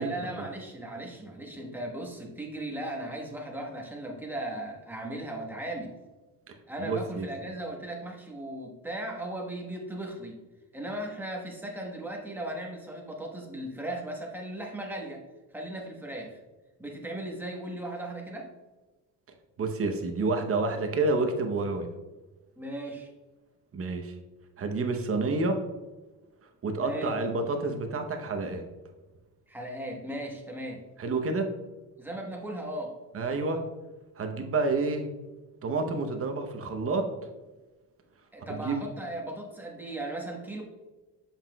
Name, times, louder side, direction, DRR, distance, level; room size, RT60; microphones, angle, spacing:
voice 1, 0.0-5.9 6.7-10.4 10.7-15.2 15.5-16.4 16.8-18.5 22.6-23.1 26.8-27.2 29.5-30.8 32.0-33.0 38.3-40.6, right 1 dB, 5° right, 0 dB, 1.1 m, -37 dB
voice 2, 6.5-7.2 19.6-21.9 23.7-24.1 24.6-25.6 26.6-28.6 31.0-31.5 33.1-33.6 34.2-35.1 35.6-37.1 38.5-38.7, right 3 dB, 35° right, 5 dB, 0.9 m, -29 dB
7.1 x 5.8 x 2.3 m, 1.2 s
cardioid pair, 120°, 40 cm